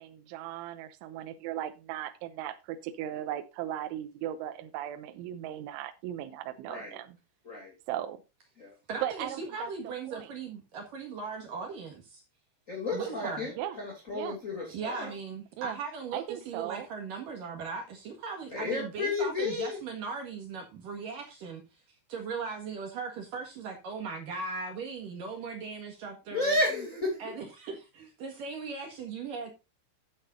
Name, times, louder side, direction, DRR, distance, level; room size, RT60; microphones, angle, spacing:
voice 1, 0.0-7.2 7.9-8.2 9.0-9.7 10.1-10.3 13.0-13.3 13.6-13.8 14.1-14.4 15.6-15.8 16.1-16.9, right 12 dB, 85° right, 3.2 m, -37 dB
voice 2, 8.9-12.2 12.9-13.5 14.7-21.6 22.1-26.6 27.2-29.5, right 5 dB, 55° right, 2.7 m, -38 dB
voice 3, 12.7-13.5 13.8-15.1 18.5-19.8 26.3-27.2, left 2 dB, 20° left, 2.3 m, -32 dB
12.5 x 8.7 x 2.6 m
omnidirectional pair, 5.6 m